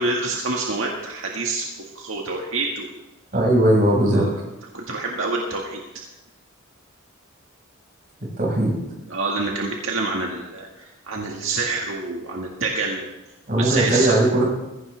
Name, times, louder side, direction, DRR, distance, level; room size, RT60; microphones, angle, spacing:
voice 1, 0.0-1.6 2.0-2.9 4.1-4.3 4.7-5.8 9.1-13.1 13.5-14.2, right 3 dB, 80° right, -1 dB, 1.8 m, -27 dB
voice 2, 3.3-4.3 8.4-8.8 13.5-14.5, right 1 dB, 45° right, -1 dB, 5.3 m, -18 dB
21.0 x 15.5 x 3.4 m, 1.0 s
head